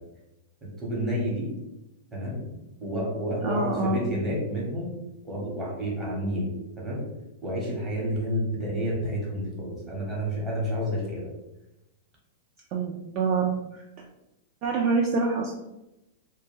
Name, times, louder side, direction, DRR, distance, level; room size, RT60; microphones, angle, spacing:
voice 1, 0.8-1.5 2.1-2.4 2.8-4.9 5.2-7.0 7.4-11.3, equal, 15° right, -5 dB, 0.9 m, -30 dB
voice 2, 3.4-4.0 12.7-13.8 14.6-15.5, right 4 dB, 35° right, -1 dB, 0.3 m, -26 dB
2.2 x 2.1 x 3.1 m, 0.92 s
supercardioid pair, 145°, 0 cm